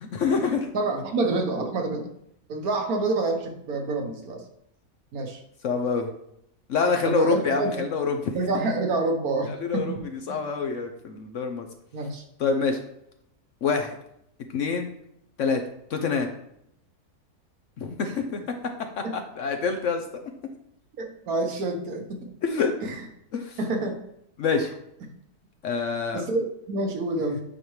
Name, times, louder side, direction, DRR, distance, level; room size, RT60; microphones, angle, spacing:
voice 1, 0.0-0.7 5.6-6.1 6.7-8.2 9.6-9.9 10.3-11.7 12.4-12.8 13.6-14.0 14.5-14.9 15.4-15.6 15.9-16.3 17.8-18.4 19.0-20.0 22.4-22.7 23.3-23.6 24.4-24.7 25.6-26.2, left 5 dB, 60° left, 5 dB, 0.9 m, -26 dB
voice 2, 0.7-2.1 2.5-4.4 5.1-5.4 7.0-7.8 8.4-10.4 11.9-12.2 18.0-18.1 19.0-19.1 21.0-22.3 22.8-23.1 23.6-24.0 25.0-25.1 26.1-27.4, right 2 dB, 70° right, 4 dB, 1.5 m, -28 dB
8.7 x 5.0 x 3.1 m, 0.75 s
omnidirectional pair, 1.7 m